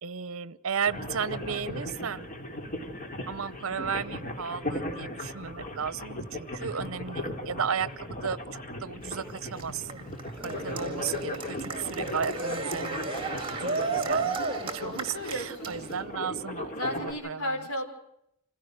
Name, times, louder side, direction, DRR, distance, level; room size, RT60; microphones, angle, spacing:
voice 1, 0.0-2.3 3.3-10.1 10.4-13.2 13.6-14.4 14.7-17.6, right 7 dB, 70° right, 18 dB, 0.7 m, -34 dB
sound 1, 0.9-17.1, left 1 dB, 40° left, 3.2 m, -37 dB
Cheering, 9.0-16.0, right 4 dB, 25° right, 2.3 m, -34 dB
voice 2, 14.5-15.7 16.7-17.8, equal, 75° left, 3 dB, 5.1 m, -35 dB
27.0 x 16.0 x 6.4 m, 0.77 s
head